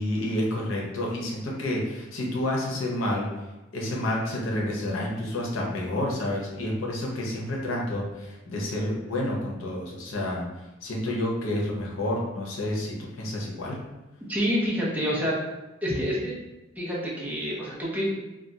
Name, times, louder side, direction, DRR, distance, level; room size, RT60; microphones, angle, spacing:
voice 1, 0.0-3.3 3.7-10.5 10.8-13.8, left 1 dB, 85° left, -2 dB, 0.7 m, -29 dB
voice 2, 14.3-15.4 15.8-16.3 16.8-18.2, equal, 10° right, -7 dB, 0.7 m, -27 dB
2.3 x 2.2 x 3.9 m, 1.1 s
head